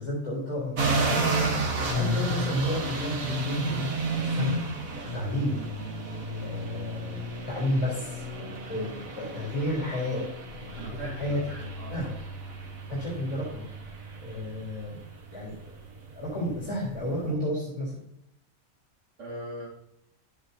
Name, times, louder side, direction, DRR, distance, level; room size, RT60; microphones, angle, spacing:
voice 1, 0.0-1.5 1.9-3.9 4.2-4.6 5.1-5.7 6.4-7.2 7.5-10.2 10.5-11.4 11.9-12.1 12.9-13.6 14.2-15.0 15.3-15.8 16.2-18.0, left 1 dB, 25° left, -6 dB, 4.1 m, -32 dB
sound 1, 0.8-17.3, right 2 dB, 80° right, 1.9 m, -32 dB
voice 2, 10.8-12.1 19.2-19.7, right 2 dB, 65° right, -5 dB, 2.5 m, -40 dB
11.5 x 9.6 x 2.8 m, 0.79 s
omnidirectional pair, 1.4 m